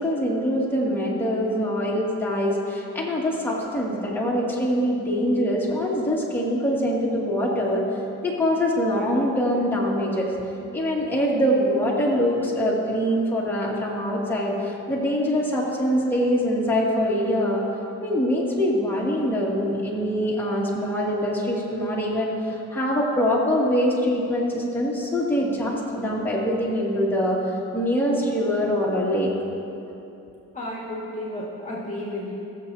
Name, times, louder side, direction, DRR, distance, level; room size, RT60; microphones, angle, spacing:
voice 1, 0.0-7.8 8.2-10.3 10.7-17.6 18.0-27.4 27.7-29.3, equal, 5° left, -5 dB, 2.3 m, -24 dB
voice 2, 30.5-32.3, left 1 dB, 25° left, -5 dB, 1.9 m, -32 dB
21.0 x 7.2 x 2.8 m, 2.8 s
cardioid pair, 90°, 30 cm